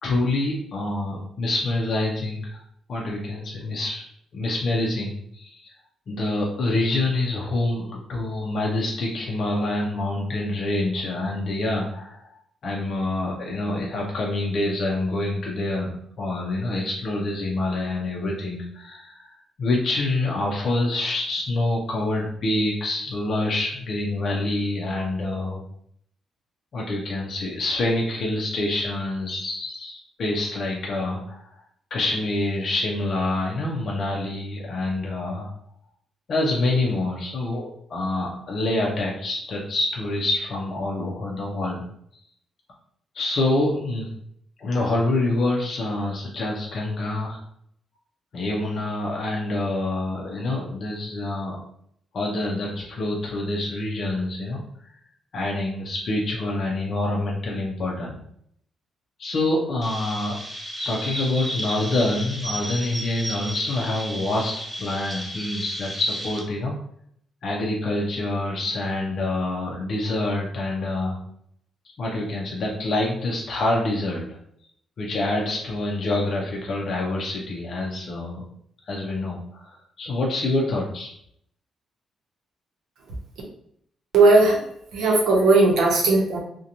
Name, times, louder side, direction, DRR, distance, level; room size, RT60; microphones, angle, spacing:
voice 1, 0.0-2.6 2.9-4.0 4.3-5.7 6.1-12.3 12.6-25.6 26.7-31.4 31.9-35.5 36.3-37.6 37.9-41.8 43.1-44.1 44.6-47.4 48.3-51.6 52.1-54.6 55.3-58.2 59.2-60.4 60.8-64.5 64.8-66.7 67.4-71.2 72.0-74.4 75.0-78.4 78.9-81.1, left 2 dB, 45° left, -3 dB, 0.5 m, -26 dB
Chirp tweet, 59.8-66.4, equal, 5° right, 0.5 m, -33 dB
voice 2, 84.1-84.6 84.9-86.4, right 3 dB, 80° right, -1 dB, 0.7 m, -17 dB
2.8 x 2.1 x 2.5 m, 0.69 s
cardioid pair, 170°, 0 cm